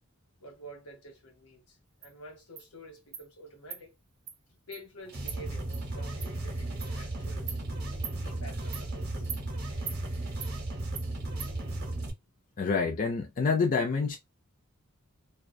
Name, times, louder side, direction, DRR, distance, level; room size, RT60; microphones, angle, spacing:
voice 1, 0.4-3.9 4.5-7.5 8.2-9.3, right 1 dB, 80° left, 1.0 m, -49 dB
Insect, 2.0-2.1 2.6-2.7 3.1-3.3 3.7-3.8 4.3-4.4 4.7-4.8 5.3-5.4 5.7-5.8 6.2-6.3 6.8-6.9 7.5-7.6 8.0-8.2 8.7-8.9 9.3-9.4 9.9-10.0 10.4-10.5 11.0-11.1 11.4-11.5, right 8 dB, 90° right, 0.6 m, -40 dB
sound 1, 5.1-12.1, right 2 dB, 45° right, 0.7 m, -35 dB
voice 2, 12.6-14.2, left 4 dB, 40° left, 0.4 m, -27 dB
2.2 x 2.2 x 2.5 m
head